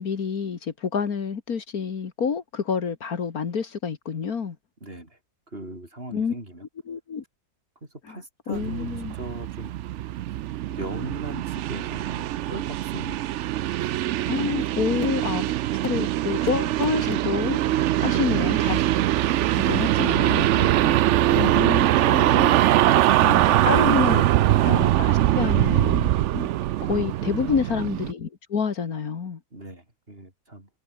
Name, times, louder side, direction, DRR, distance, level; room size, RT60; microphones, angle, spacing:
voice 1, 0.0-4.6 6.1-6.3 6.9-7.2 8.1-8.2 8.5-9.1 14.3-15.4 15.8-17.6 18.0-18.8 19.6-20.5 20.8-21.0 21.3-22.6 23.2-24.2 24.6-26.5 26.9-29.4, left 6 dB, 65° left, 2.1 m, -28 dB
voice 2, 4.8-5.2 5.5-6.7 7.8-9.7 10.7-13.5 18.1-18.5 20.5-21.0 22.9-24.5 26.9-27.6 29.5-30.7, right 1 dB, 35° right, 6.1 m, -38 dB
sound 1, 8.5-28.1, right 13 dB, 70° right, 0.7 m, -22 dB
omnidirectional pair, 1.7 m